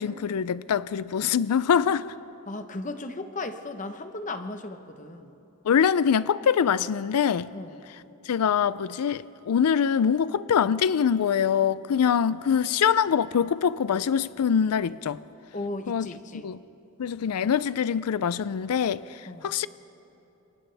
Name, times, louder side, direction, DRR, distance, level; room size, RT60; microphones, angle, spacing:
voice 1, 0.0-2.1 5.6-7.5 8.2-15.2 15.9-16.1 16.4-16.6 17.0-19.7, left 7 dB, 85° left, 0.4 m, -24 dB
voice 2, 2.5-5.4 7.5-7.8 15.5-16.5 19.3-19.5, left 2 dB, 35° left, 1.0 m, -36 dB
29.0 x 27.0 x 3.4 m
head